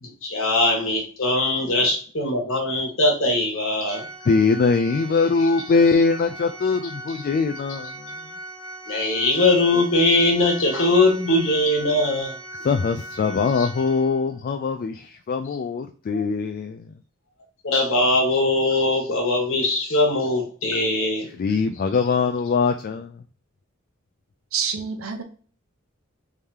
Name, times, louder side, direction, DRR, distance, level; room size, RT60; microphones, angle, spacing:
voice 1, 0.0-4.0 5.4-5.5 5.9-6.0 8.9-12.4 13.6-13.7 16.1-16.2 17.6-21.3, left 2 dB, 65° left, 1 dB, 1.4 m, -21 dB
Organ, 3.8-14.4, right 1 dB, 15° right, 1.3 m, -39 dB
voice 2, 4.3-7.9 12.6-16.9 21.4-23.2, left 4 dB, 45° left, 6 dB, 0.3 m, -22 dB
voice 3, 24.5-25.2, right 7 dB, 75° right, 6 dB, 0.8 m, -27 dB
3.6 x 3.3 x 2.8 m, 0.42 s
head